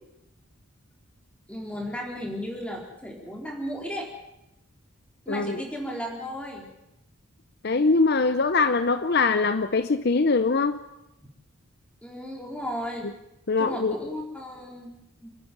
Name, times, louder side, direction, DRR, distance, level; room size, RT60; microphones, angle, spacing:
voice 1, 1.5-4.1 5.3-6.7 12.0-13.1 13.6-14.9 15.2-15.3, equal, 5° left, 0 dB, 4.0 m, -34 dB
voice 2, 5.3-5.6 7.6-10.8 13.5-14.0, left 4 dB, 50° left, 11 dB, 0.7 m, -22 dB
28.5 x 10.5 x 9.3 m, 0.89 s
head